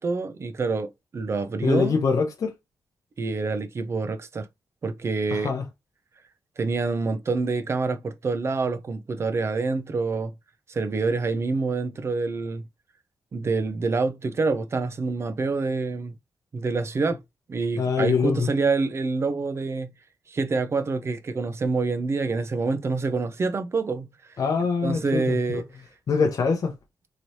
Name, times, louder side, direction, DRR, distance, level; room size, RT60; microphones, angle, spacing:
voice 1, 0.0-2.0 3.2-4.5 4.8-5.5 6.6-10.3 10.7-12.6 13.3-16.1 16.5-17.2 17.5-19.9 20.3-24.1 24.8-25.6, right 4 dB, 40° right, 0.5 m, -26 dB
voice 2, 1.6-2.5 5.3-5.6 17.8-18.5 24.4-25.6 26.1-26.7, left 5 dB, 55° left, 0.7 m, -24 dB
3.1 x 2.9 x 2.7 m
cardioid pair, 110°, 7 cm